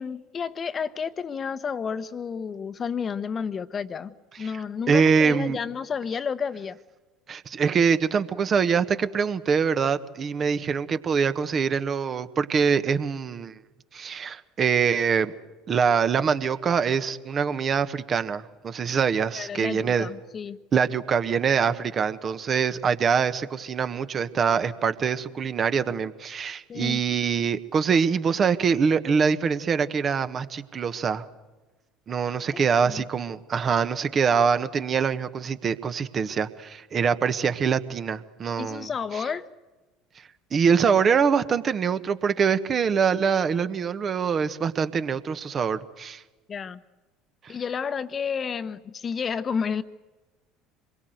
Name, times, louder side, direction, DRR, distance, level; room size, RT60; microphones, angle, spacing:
voice 1, 0.0-6.8 19.3-20.6 26.7-27.0 32.5-33.0 38.6-39.5 46.5-46.8 47.5-49.8, left 6 dB, 35° left, 13 dB, 1.1 m, -31 dB
voice 2, 4.9-5.6 7.3-13.5 13.9-15.3 15.7-20.1 20.7-31.2 32.1-38.9 40.5-46.2 47.4-47.5, right 6 dB, 40° right, 11 dB, 1.4 m, -24 dB
26.0 x 22.5 x 8.0 m, 1.2 s
hypercardioid pair, 65°, 0 cm